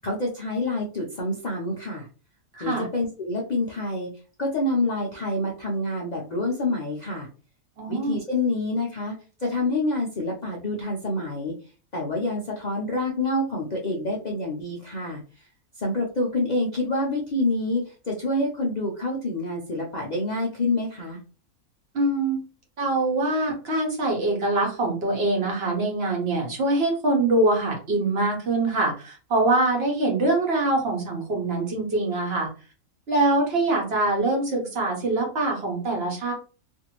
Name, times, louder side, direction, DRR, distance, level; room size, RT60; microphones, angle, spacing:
voice 1, 0.0-2.1 2.6-4.1 4.4-7.3 7.9-9.1 9.4-11.5 11.9-15.5 15.8-21.2, left 2 dB, 90° left, -2 dB, 0.3 m, -27 dB
voice 2, 2.5-2.9 7.8-8.2 21.9-22.4 22.8-32.5 33.1-36.3, right 2 dB, 50° right, 0 dB, 1.0 m, -24 dB
2.6 x 2.5 x 2.9 m, 0.36 s
omnidirectional pair, 1.5 m